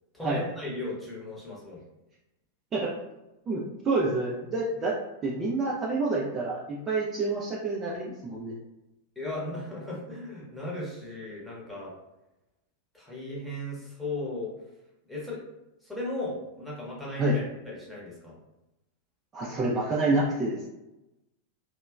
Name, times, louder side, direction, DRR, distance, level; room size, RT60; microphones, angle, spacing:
voice 1, 0.1-1.8 9.2-11.9 12.9-14.5 15.1-15.4 15.8-18.4, left 1 dB, 5° left, -6 dB, 0.9 m, -36 dB
voice 2, 3.5-5.0 5.2-8.5 17.2-17.4 19.3-20.6, right 2 dB, 25° right, -4 dB, 0.4 m, -28 dB
2.8 x 2.1 x 2.3 m, 0.96 s
figure-of-eight pair, 90°, 0 cm